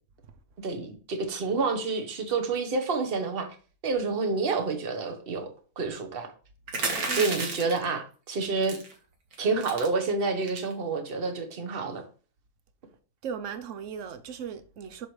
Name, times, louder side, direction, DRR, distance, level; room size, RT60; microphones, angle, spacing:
voice 1, 0.6-3.5 3.8-5.5 5.8-6.3 7.1-8.8 9.4-12.0, right 4 dB, 40° right, 1.3 m, -28 dB
sound 1, 6.7-7.8 8.6-8.9 9.3-9.4 9.6-9.9 10.4-10.7, right 3 dB, 80° right, 1.9 m, -31 dB
voice 2, 13.2-15.1, right 7 dB, 60° right, 1.0 m, -37 dB
7.9 x 6.2 x 3.2 m
omnidirectional pair, 1.5 m